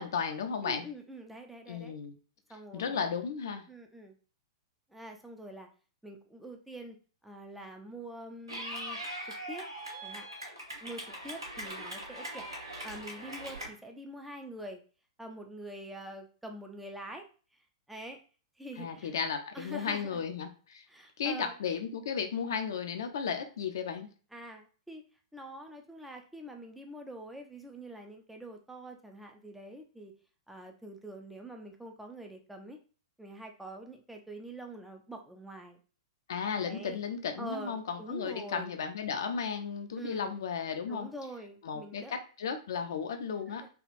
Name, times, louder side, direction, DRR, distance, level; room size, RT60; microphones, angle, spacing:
voice 1, 0.0-0.9 1.7-2.2 2.7-3.6 18.8-20.8 21.2-24.1 36.3-41.1 41.6-43.6, left 6 dB, 60° left, 6 dB, 0.5 m, -34 dB
voice 2, 0.6-1.9 2.5-3.1 3.7-4.2 4.9-5.7 6.0-7.0 7.2-9.0 9.2-9.7 10.0-10.3 10.8-12.5 12.8-14.8 15.2-17.3 17.9-18.2 18.6-19.1 19.5-20.2 20.9-21.6 24.3-25.0 25.3-30.1 30.5-32.8 33.2-35.8 36.7-37.0 37.4-38.7 39.9-40.4 40.9-42.1 43.6-43.7, right 1 dB, 5° right, 3 dB, 0.4 m, -45 dB
Clapping / Cheering, 8.5-13.7, right 1 dB, 80° right, 1.2 m, -41 dB
3.4 x 2.3 x 2.5 m, 0.37 s
figure-of-eight pair, 105°, 2 cm